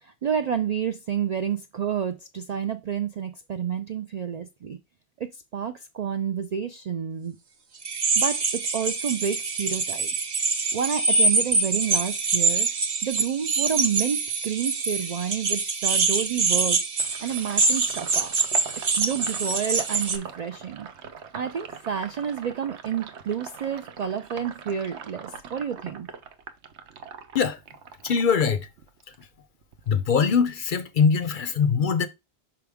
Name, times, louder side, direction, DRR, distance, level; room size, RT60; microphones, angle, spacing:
voice 1, 0.0-4.8 5.2-7.4 8.2-10.1 10.7-12.7 13.0-16.8 17.2-18.3 19.0-20.9 21.3-26.1, right 8 dB, 60° right, 0.4 m, -29 dB
sound 1, 7.8-20.2, right 4 dB, 45° right, 0.8 m, -25 dB
Sink (filling or washing), 17.0-29.3 29.6-31.0, right 6 dB, 80° right, 1.1 m, -42 dB
voice 2, 28.0-28.7 29.9-32.1, left 6 dB, 55° left, 0.6 m, -22 dB
5.9 x 4.8 x 3.5 m
omnidirectional pair, 1.2 m